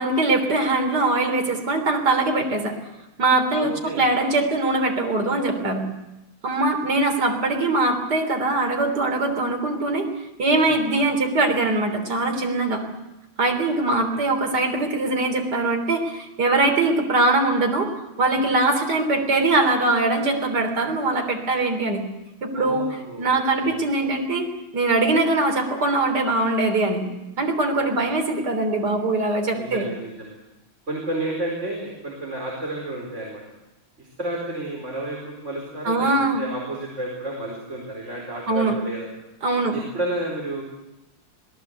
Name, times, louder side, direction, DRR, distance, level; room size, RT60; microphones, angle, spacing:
voice 1, 0.0-2.7 3.2-5.9 6.4-10.1 10.4-12.8 13.4-17.9 18.2-22.0 22.4-27.0 27.4-29.9 35.8-36.4 38.5-38.8 39.4-39.8, right 2 dB, 50° right, 4 dB, 4.0 m, -22 dB
voice 2, 3.5-4.0 10.5-11.0 13.9-14.2 22.5-24.1 27.7-28.1 29.5-30.4 30.9-33.4 34.0-36.1 36.4-39.1 39.7-40.6, right 1 dB, 30° right, -2 dB, 4.9 m, -31 dB
26.0 x 19.0 x 8.1 m, 0.95 s
omnidirectional pair, 2.3 m